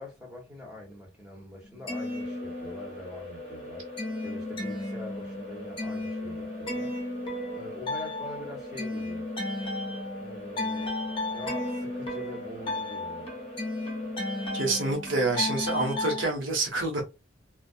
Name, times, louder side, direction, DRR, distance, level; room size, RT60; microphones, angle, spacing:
voice 1, 0.0-3.9 4.2-6.9 7.5-9.3 10.2-10.9 11.3-13.3, left 1 dB, 5° right, 1.1 m, -44 dB
sound 1, 1.6-3.1 3.4-16.3, left 2 dB, 30° left, 0.7 m, -34 dB
sound 2, 1.9-14.9, left 1 dB, 45° right, 1.3 m, -42 dB
voice 2, 14.5-17.1, right 2 dB, 90° right, 1.0 m, -27 dB
2.2 x 2.2 x 2.6 m
head